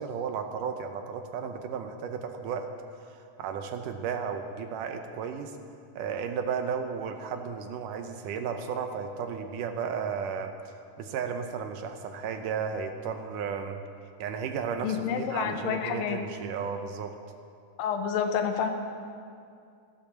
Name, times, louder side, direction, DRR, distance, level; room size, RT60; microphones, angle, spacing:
voice 1, 0.0-2.7 3.1-5.5 6.0-10.5 11.0-13.8 14.2-17.1, right 6 dB, 75° right, 6 dB, 2.2 m, -34 dB
voice 2, 14.8-16.2 17.8-18.7, left 7 dB, 85° left, 5 dB, 2.7 m, -29 dB
15.5 x 8.6 x 7.0 m, 2.4 s
omnidirectional pair, 4.0 m